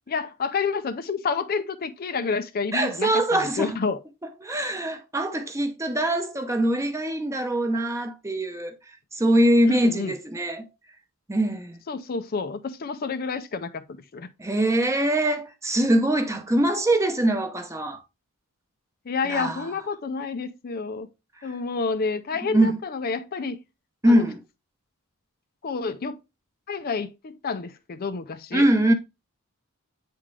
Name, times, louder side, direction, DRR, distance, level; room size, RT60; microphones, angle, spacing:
voice 1, 0.1-4.0 9.7-10.1 11.9-13.8 14.1-14.3 19.1-21.1 21.4-23.6 24.1-24.3 25.6-26.2 26.7-28.6, left 4 dB, 45° left, 0.5 m, -29 dB
voice 2, 2.7-3.8 4.4-8.7 9.1-10.7 11.3-11.8 14.4-18.0 19.2-19.6 22.5-22.8 24.0-24.4 28.5-28.9, right 1 dB, 15° right, 0.8 m, -23 dB
8.5 x 3.7 x 3.3 m
head